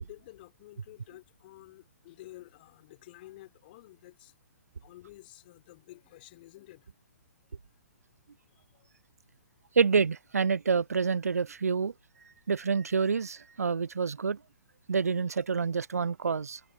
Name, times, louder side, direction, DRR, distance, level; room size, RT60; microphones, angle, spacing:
voice 1, 0.0-4.3 4.8-6.9 8.7-8.9, left 17 dB, 40° left, 5.5 m, -51 dB
voice 2, 9.8-11.9 12.5-14.4 14.9-16.6, right 5 dB, 75° right, 0.4 m, -27 dB
figure-of-eight pair, 125°, 8 cm